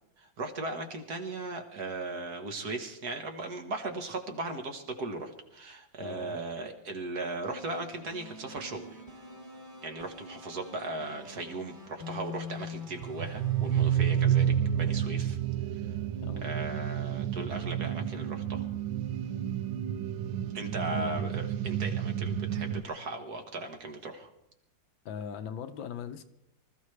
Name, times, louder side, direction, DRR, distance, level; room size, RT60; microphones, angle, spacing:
voice 1, 0.2-9.0 9.8-15.4 15.7-16.0 16.4-18.7 20.5-24.3, right 2 dB, 50° right, 5 dB, 1.7 m, -37 dB
voice 2, 6.0-6.4 16.2-16.5 20.9-21.3 25.0-26.2, left 7 dB, 70° left, 9 dB, 1.5 m, -40 dB
sound 1, 7.5-15.6, left 2 dB, 25° right, 2.3 m, -46 dB
sound 2, 12.9-22.8, right 10 dB, 70° right, 1.4 m, -30 dB
25.0 x 14.0 x 3.3 m, 0.80 s
omnidirectional pair, 2.3 m